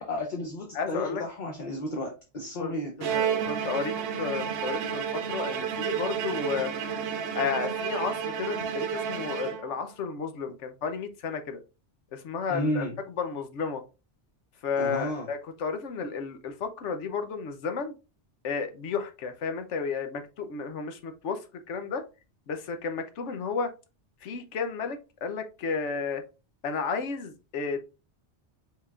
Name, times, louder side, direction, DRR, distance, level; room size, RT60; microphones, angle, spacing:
voice 1, 0.0-2.9 12.5-12.9 14.8-15.3, left 1 dB, 45° left, 0.9 m, -32 dB
voice 2, 0.7-1.2 2.6-6.7 7.3-11.6 12.1-12.8 13.2-13.8 14.6-17.9 18.4-22.0 22.5-23.7 24.2-26.2 26.6-27.8, left 5 dB, 90° left, 1.1 m, -32 dB
Bowed string instrument, 3.0-10.0, right 8 dB, 80° right, 0.9 m, -31 dB
5.5 x 3.6 x 2.4 m
omnidirectional pair, 1.2 m